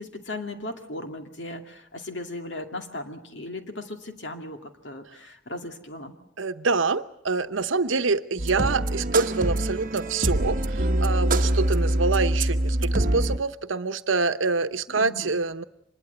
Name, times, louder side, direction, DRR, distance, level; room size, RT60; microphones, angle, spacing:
voice 1, 0.0-6.1 14.9-15.3, left 2 dB, 60° left, 5 dB, 2.4 m, -37 dB
voice 2, 6.4-15.6, right 4 dB, 80° right, 12 dB, 1.0 m, -26 dB
sound 1, 8.4-13.4, right 1 dB, 45° right, 1.1 m, -24 dB
25.0 x 21.0 x 8.1 m, 0.76 s
head